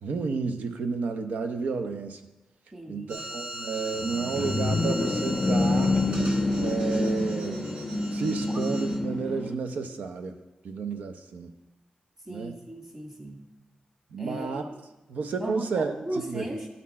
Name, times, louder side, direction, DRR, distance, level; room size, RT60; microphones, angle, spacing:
voice 1, 0.0-2.2 2.9-6.0 6.6-7.8 8.1-10.4 10.6-11.5 12.3-12.6 14.1-14.7 15.1-16.5, right 4 dB, 90° right, 7 dB, 0.6 m, -31 dB
voice 2, 2.7-3.2 8.5-8.6 12.3-13.4 14.2-14.8 15.4-16.7, right 1 dB, 25° right, 1 dB, 1.6 m, -37 dB
sound 1, 3.1-9.0, right 1 dB, 50° right, 1.2 m, -39 dB
sound 2, 3.9-9.5, left 2 dB, 30° left, 0.5 m, -27 dB
12.0 x 4.3 x 4.2 m, 1.0 s
wide cardioid pair, 125°, 3 cm